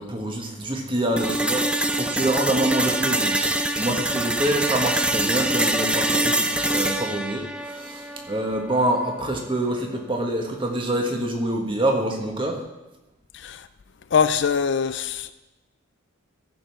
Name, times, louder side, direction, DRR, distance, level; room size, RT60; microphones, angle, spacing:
voice 1, 0.0-3.4 3.8-12.6, right 1 dB, 25° right, 1.5 m, -26 dB
sound 1, 1.2-9.2, right 1 dB, 5° right, 0.4 m, -25 dB
voice 2, 13.3-13.7 14.1-15.3, left 6 dB, 55° left, 0.4 m, -23 dB
14.0 x 5.3 x 6.1 m
head